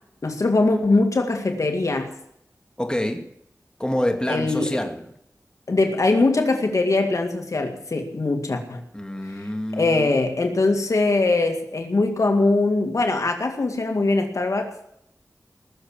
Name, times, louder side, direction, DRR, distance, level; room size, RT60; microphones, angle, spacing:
voice 1, 0.2-2.1 4.3-4.8 5.7-8.8 9.4-9.5 9.7-14.7, left 2 dB, 65° left, 2.1 m, -21 dB
voice 2, 2.8-3.3 3.8-5.0 8.9-10.2, left 1 dB, 15° left, 2.3 m, -27 dB
20.0 x 7.3 x 7.2 m
wide cardioid pair, 50°, 6 cm